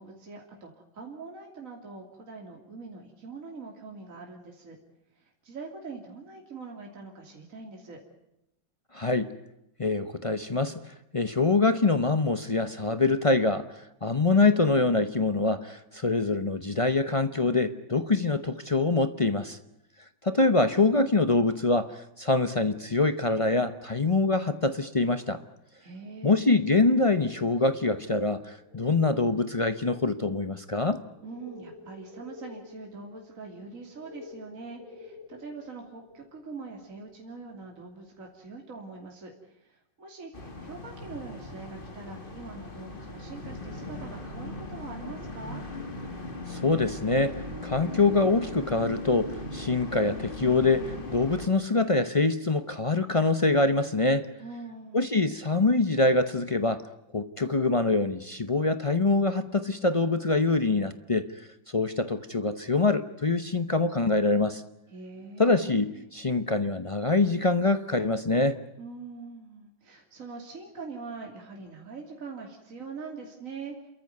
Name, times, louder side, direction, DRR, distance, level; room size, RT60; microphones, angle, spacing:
voice 1, 0.0-4.8 5.2-8.0 25.8-26.3 31.2-45.6 54.4-55.1 64.9-66.0 68.8-73.9, right 4 dB, 45° right, 1 dB, 3.2 m, -43 dB
voice 2, 8.9-9.3 9.8-10.8 11.1-19.6 20.2-25.4 26.2-31.0 46.5-54.3 54.9-56.8 57.1-61.3 61.7-64.6 65.4-68.6, left 3 dB, 45° left, 11 dB, 0.4 m, -25 dB
sound 1, 26.6-37.6 38.1-38.2, left 3 dB, 90° left, 7.4 m, -50 dB
sound 2, 40.3-51.5, left 2 dB, 30° left, 2.3 m, -39 dB
29.5 x 14.0 x 9.3 m, 0.87 s
omnidirectional pair, 2.0 m